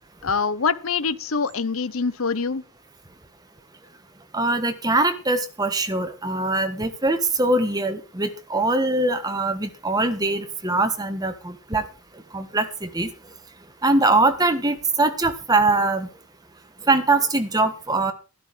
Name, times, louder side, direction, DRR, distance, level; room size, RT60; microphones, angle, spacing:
voice 1, 0.2-2.6, left 5 dB, 65° left, 0.9 m, -24 dB
voice 2, 4.3-11.8 12.3-13.1 13.8-16.1 16.9-18.1, right 2 dB, 15° right, 1.6 m, -22 dB
12.5 x 12.0 x 4.9 m
head